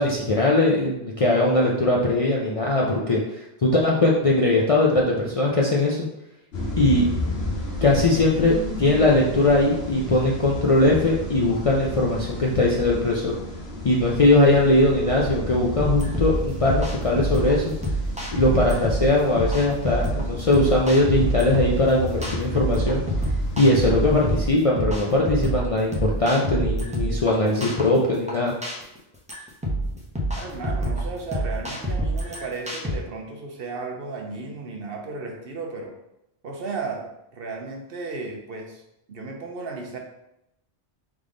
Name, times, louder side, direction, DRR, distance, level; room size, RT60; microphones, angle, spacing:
voice 1, 0.0-6.1 6.8-7.1 7.8-13.4 13.8-17.7 18.3-23.0 23.6-28.5, left 2 dB, 45° left, -3 dB, 0.4 m, -20 dB
sound 1, 6.5-24.5, left 1 dB, 70° left, 1.0 m, -32 dB
sound 2, 15.7-33.0, right 1 dB, 10° right, 0.6 m, -27 dB
voice 2, 30.3-35.9 36.4-38.8 39.1-40.0, right 4 dB, 60° right, 1 dB, 0.9 m, -34 dB
3.6 x 3.4 x 3.8 m, 0.86 s
omnidirectional pair, 1.1 m